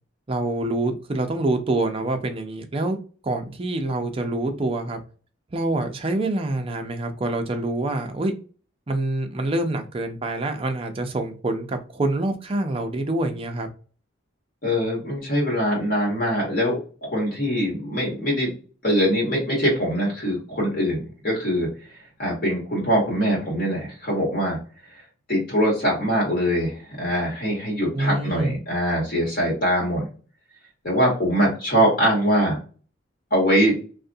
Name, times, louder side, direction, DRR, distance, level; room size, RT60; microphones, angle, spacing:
voice 1, 0.3-3.0 3.2-5.0 5.5-8.3 8.9-13.7 27.9-28.6, right 2 dB, 30° right, 5 dB, 0.4 m, -26 dB
voice 2, 14.6-18.5 18.8-21.7 22.2-24.6 25.3-30.1 30.8-32.6 33.3-33.7, equal, 50° left, -3 dB, 1.5 m, -23 dB
2.7 x 2.5 x 2.5 m, 0.38 s
head